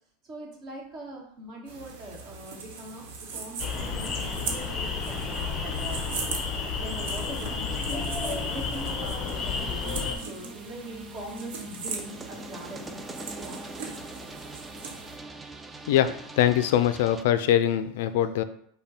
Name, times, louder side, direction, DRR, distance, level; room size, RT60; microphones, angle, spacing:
voice 1, 0.2-3.0 3.3-6.1 6.7-13.1 13.4-13.6, right 1 dB, 35° right, -2 dB, 1.4 m, -42 dB
sound 1, 1.7-15.2, right 5 dB, 70° right, 1.1 m, -40 dB
sound 2, 3.6-10.2, left 5 dB, 25° left, 0.7 m, -31 dB
sound 3, 9.3-17.2, right 2 dB, 10° right, 0.3 m, -43 dB
voice 2, 15.9-18.4, left 11 dB, 70° left, 11 dB, 0.3 m, -23 dB
5.3 x 2.2 x 4.3 m, 0.67 s
supercardioid pair, 150°, 0 cm